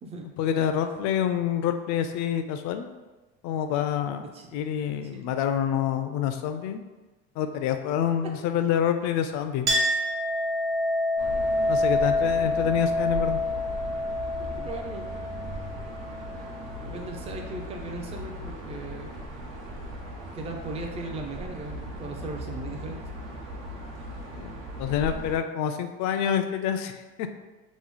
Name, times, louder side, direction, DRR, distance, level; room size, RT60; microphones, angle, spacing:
voice 1, 0.4-2.9 3.4-4.2 4.5-6.8 7.4-9.7 11.7-13.4 24.3-24.5 24.8-27.3, left 9 dB, 60° left, 8 dB, 0.4 m, -27 dB
voice 2, 4.2-4.6 5.1-5.2 8.2-8.3 12.4-12.7 14.6-15.1 16.8-19.2 20.3-23.0, right 2 dB, 20° right, 2 dB, 0.4 m, -38 dB
Chink clink, 9.7-16.7, left 1 dB, 40° right, 1.0 m, -27 dB
sound 1, 11.2-25.4, right 1 dB, 80° right, 1.0 m, -38 dB
3.1 x 2.0 x 4.0 m, 1.2 s
cardioid pair, 115°, 31 cm